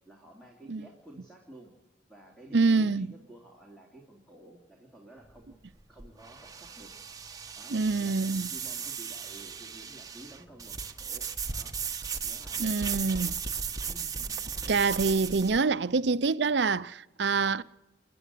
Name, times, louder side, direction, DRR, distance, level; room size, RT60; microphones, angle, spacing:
voice 1, 0.0-1.7 2.1-5.5 5.9-6.9 7.5-11.8 12.2-14.4, right 1 dB, 5° left, 3.0 m, -52 dB
voice 2, 2.5-3.1 7.7-8.5 12.6-13.3 14.7-17.6, right 4 dB, 65° right, 0.6 m, -26 dB
sound 1, 5.2-15.6, right 6 dB, 20° right, 1.3 m, -36 dB
30.0 x 11.0 x 8.4 m
head